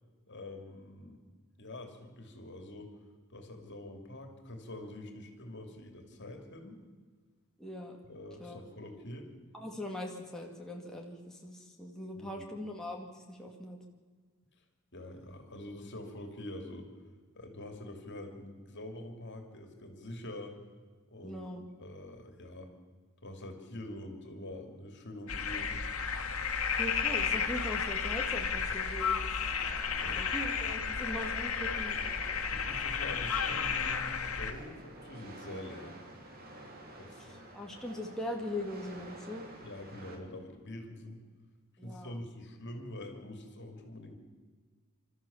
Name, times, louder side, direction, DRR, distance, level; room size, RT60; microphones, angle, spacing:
voice 1, 0.3-1.2 1.6-2.9 3.3-6.8 8.0-9.3 12.1-12.5 14.9-16.9 17.3-20.6 21.1-21.5 21.8-22.7 23.2-25.8 30.0-30.2 32.5-35.9 37.0-37.4 39.6-41.2 41.8-44.2, left 1 dB, 55° left, 5 dB, 2.8 m, -45 dB
voice 2, 7.6-7.9 8.4-8.7 9.5-13.8 21.2-21.6 26.8-29.5 30.1-32.0 37.2-39.5 41.8-42.2, left 1 dB, 5° left, -1 dB, 2.1 m, -41 dB
sound 1, 25.3-34.5, left 6 dB, 85° left, 1.8 m, -33 dB
sound 2, 29.4-40.2, right 1 dB, 45° right, 2.9 m, -50 dB
27.5 x 13.5 x 7.3 m, 1.5 s
head